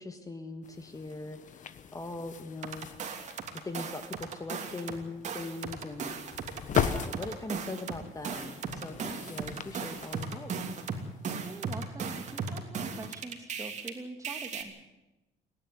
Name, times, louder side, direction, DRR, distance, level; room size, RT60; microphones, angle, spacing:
voice 1, 0.0-2.9 3.6-6.1 6.8-10.5, left 3 dB, 20° left, 8 dB, 1.6 m, -41 dB
sound 1, 0.6-11.8, left 8 dB, 50° left, 1.2 m, -39 dB
sound 2, 2.6-5.0 5.2-13.9 14.2-14.6, right 5 dB, 45° right, 3.0 m, -37 dB
voice 2, 11.3-14.7, right 2 dB, 20° right, 6 dB, 2.6 m, -44 dB
28.5 x 11.0 x 9.6 m, 1.0 s
cardioid pair, 110°, 17 cm